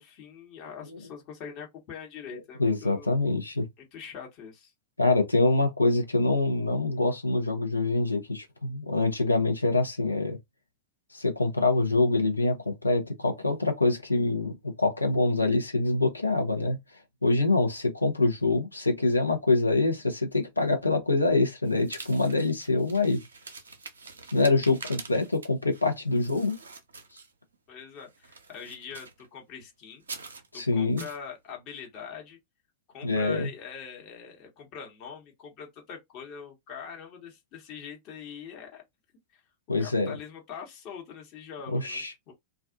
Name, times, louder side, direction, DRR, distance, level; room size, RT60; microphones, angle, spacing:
voice 1, 0.0-3.1 3.8-4.7 27.7-30.0 30.5-32.4 32.9-38.8 39.3-39.4 39.8-42.3, left 7 dB, 40° left, 1.0 m, -43 dB
voice 2, 2.6-3.7 5.0-10.4 11.1-16.8 17.2-23.2 24.3-26.5 30.5-31.0 33.0-33.5 39.7-40.2 41.7-42.1, left 3 dB, 85° left, 0.6 m, -25 dB
sound 1, 21.6-27.6 28.0-29.3 30.0-30.5 31.0-31.2, right 4 dB, 70° right, 0.5 m, -45 dB
2.4 x 2.2 x 2.5 m
figure-of-eight pair, 90°, 0 cm